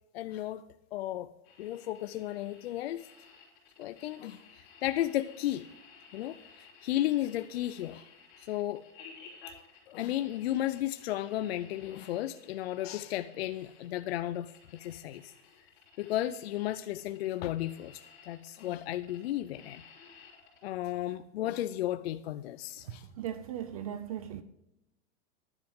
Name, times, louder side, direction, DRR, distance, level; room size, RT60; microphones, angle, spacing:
voice 1, 0.1-0.6 0.9-1.3 1.6-3.1 3.8-5.6 6.1-8.1 8.4-8.8 9.9-15.3 16.0-19.8 20.6-23.1, left 13 dB, 60° left, 0.5 m, -34 dB
sound 1, 1.4-20.6, left 5 dB, 30° left, 3.8 m, -56 dB
voice 2, 22.9-24.4, right 10 dB, 35° right, 0.4 m, -38 dB
11.5 x 10.5 x 3.6 m
supercardioid pair, 180°, 34 cm